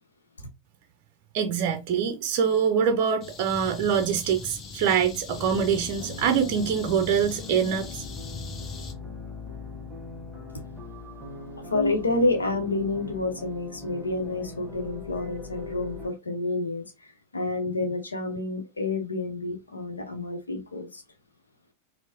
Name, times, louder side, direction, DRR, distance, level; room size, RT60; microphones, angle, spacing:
voice 1, 1.3-8.0, right 7 dB, 45° right, 0.5 m, -24 dB
sound 1, 3.2-8.9, left 3 dB, 30° left, 0.7 m, -40 dB
sound 2, 5.3-16.1, left 3 dB, ahead, 1.3 m, -40 dB
voice 2, 11.7-16.9 17.3-21.0, left 2 dB, 75° left, 0.7 m, -28 dB
4.5 x 2.0 x 2.8 m
figure-of-eight pair, 90°, 0 cm